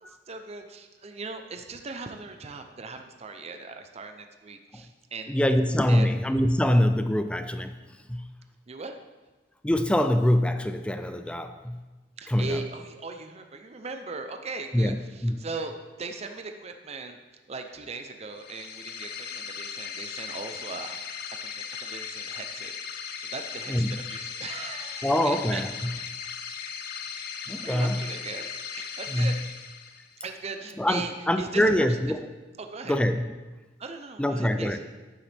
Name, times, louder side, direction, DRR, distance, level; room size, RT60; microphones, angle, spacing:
voice 1, 0.0-5.3 5.9-6.1 8.7-9.0 12.2-15.7 16.0-17.2 17.5-21.0 21.4-25.6 27.6-29.6 30.2-32.0 32.6-33.0 33.8-34.8, right 4 dB, 35° right, 6 dB, 0.6 m, -39 dB
voice 2, 5.3-7.8 8.1-8.3 9.6-11.8 12.3-12.6 14.7-15.0 15.2-15.4 23.7-24.0 25.0-25.9 27.5-28.0 29.1-29.4 30.8-32.3 32.9-33.3 34.2-34.8, left 1 dB, 5° left, 8 dB, 0.4 m, -24 dB
sound 1, 18.3-30.3, left 7 dB, 55° left, 0.7 m, -38 dB
12.0 x 8.8 x 3.5 m, 1.2 s
head